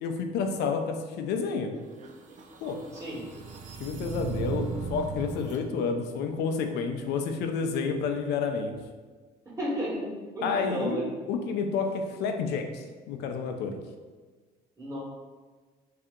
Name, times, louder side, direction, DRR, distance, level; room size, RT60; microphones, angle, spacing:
voice 1, 0.0-1.7 2.6-2.8 3.8-8.7 10.4-11.0 11.3-13.8, left 5 dB, 80° left, 5 dB, 0.5 m, -30 dB
sound 1, 1.8-5.6, right 5 dB, 45° right, 0.5 m, -37 dB
voice 2, 2.9-3.2 9.6-10.1 10.3-11.1 14.8-15.0, equal, 20° right, -4 dB, 1.4 m, -32 dB
3.3 x 2.8 x 3.7 m, 1.4 s
cardioid pair, 110°, 17 cm